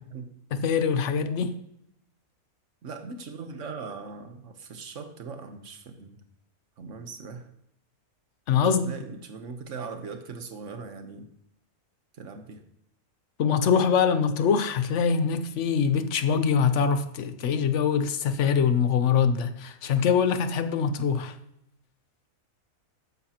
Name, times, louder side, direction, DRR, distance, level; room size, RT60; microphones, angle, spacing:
voice 1, 0.5-1.5 8.5-8.9 13.4-21.4, left 6 dB, 60° left, 1.0 m, -23 dB
voice 2, 2.8-6.2 6.8-7.5 8.9-11.3 12.1-12.6, right 4 dB, 55° right, 1.3 m, -40 dB
13.0 x 9.9 x 2.9 m
omnidirectional pair, 1.6 m